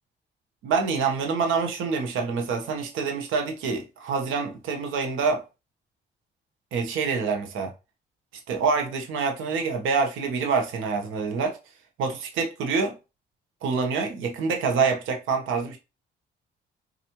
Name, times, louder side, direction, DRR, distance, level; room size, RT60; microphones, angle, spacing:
voice 1, 0.6-5.4 6.7-7.7 8.5-11.6 12.0-12.9 13.6-15.8, right 5 dB, 90° right, 1.0 m, -26 dB
4.3 x 2.5 x 2.9 m
cardioid pair, 90°, 20 cm